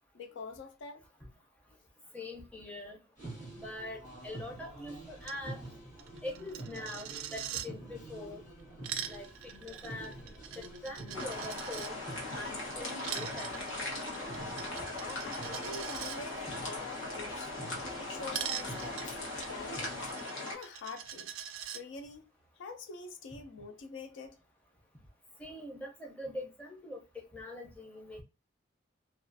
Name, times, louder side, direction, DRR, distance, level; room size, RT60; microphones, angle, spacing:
voice 1, 0.1-1.0 15.0-17.5 18.0-19.2 19.5-20.1 20.5-21.3 21.7-22.3 22.6-24.4, left 4 dB, 75° left, 0.4 m, -45 dB
voice 2, 2.1-3.0 3.6-5.6 6.2-8.4 9.1-9.3 9.6-10.1 10.6-11.9 12.3-13.7 25.4-28.2, left 1 dB, 5° left, 0.5 m, -43 dB
sound 1, 3.2-20.1, right 1 dB, 40° left, 1.1 m, -48 dB
Coin (dropping), 5.2-5.4 5.7-5.8 6.0-7.7 8.6-11.9 12.9-16.2 18.3-21.8, right 10 dB, 90° right, 0.3 m, -42 dB
sound 2, 11.1-20.5, left 2 dB, 90° left, 1.1 m, -39 dB
2.3 x 2.3 x 2.5 m
head